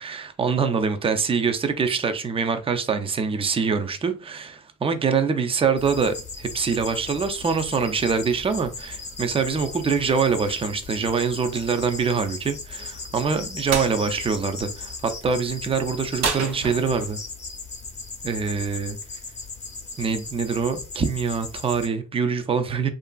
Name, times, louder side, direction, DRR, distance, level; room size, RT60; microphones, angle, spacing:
voice 1, 0.0-17.2 18.2-19.0 20.0-22.9, right 5 dB, 20° right, 0.4 m, -24 dB
sound 1, 5.8-21.9, left 4 dB, 25° left, 0.6 m, -37 dB
sound 2, 13.7-13.9 16.2-17.2, right 5 dB, 65° right, 0.6 m, -27 dB
2.8 x 2.5 x 2.3 m
cardioid pair, 90°, 30 cm